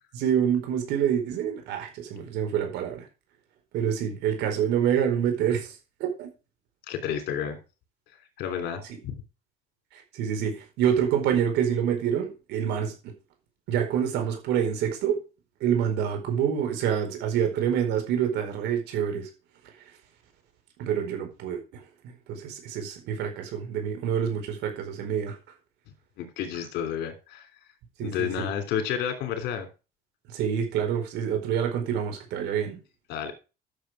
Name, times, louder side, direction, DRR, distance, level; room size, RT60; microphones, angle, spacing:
voice 1, 0.1-3.1 3.7-5.7 6.0-6.3 8.9-9.0 9.9-13.1 13.7-15.2 15.6-19.3 20.8-25.4 28.0-28.5 30.3-32.8, right 8 dB, 85° right, 4 dB, 4.5 m, -27 dB
voice 2, 6.9-7.6 8.4-9.1 26.2-27.5 28.0-29.7 33.1-33.3, left 8 dB, 80° left, 7 dB, 3.2 m, -31 dB
11.5 x 7.0 x 4.9 m, 0.31 s
cardioid pair, 110°, 17 cm